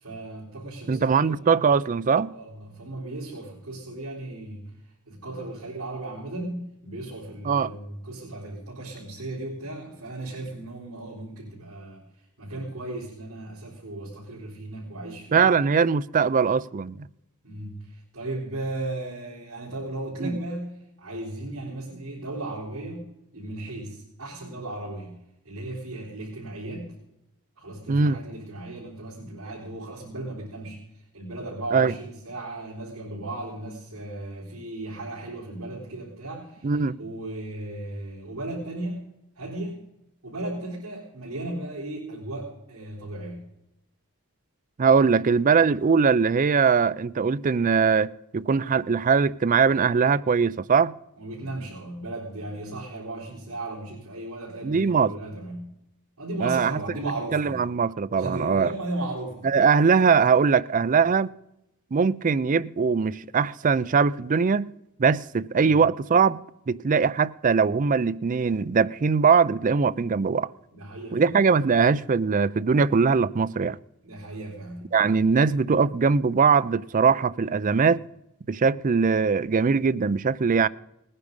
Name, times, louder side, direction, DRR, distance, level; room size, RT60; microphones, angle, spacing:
voice 1, 0.0-1.5 2.3-15.5 17.4-23.0 23.3-25.2 25.4-26.9 27.6-39.0 39.4-39.8 40.2-43.4 51.2-55.7 56.2-57.6 58.2-59.6 70.7-71.4 74.0-74.9, right 2 dB, 65° right, 4.0 m, -36 dB
voice 2, 0.9-2.3 7.4-7.7 15.3-17.0 20.2-20.3 27.9-28.2 31.7-31.9 36.6-37.0 44.8-50.9 54.6-55.1 56.4-56.7 57.3-58.7 59.4-61.3 61.9-64.7 65.0-66.4 66.7-70.5 71.1-73.8 74.9-78.0 78.5-80.7, right 5 dB, 35° right, 0.4 m, -21 dB
19.0 x 9.8 x 5.3 m
head